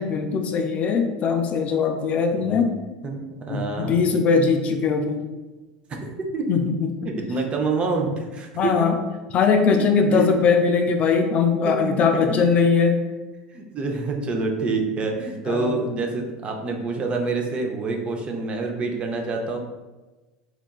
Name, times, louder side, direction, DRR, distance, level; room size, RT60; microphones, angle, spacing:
voice 1, 0.0-2.7 3.5-5.2 6.5-6.9 8.6-9.0 9.3-12.9 15.5-15.7, left 5 dB, 40° left, 4 dB, 0.3 m, -20 dB
voice 2, 3.0-4.0 5.9-6.5 7.0-8.7 10.1-10.3 11.6-12.2 13.5-19.6, right 3 dB, 35° right, 2 dB, 0.5 m, -27 dB
2.9 x 2.3 x 2.3 m, 1.2 s
hypercardioid pair, 85°, 3 cm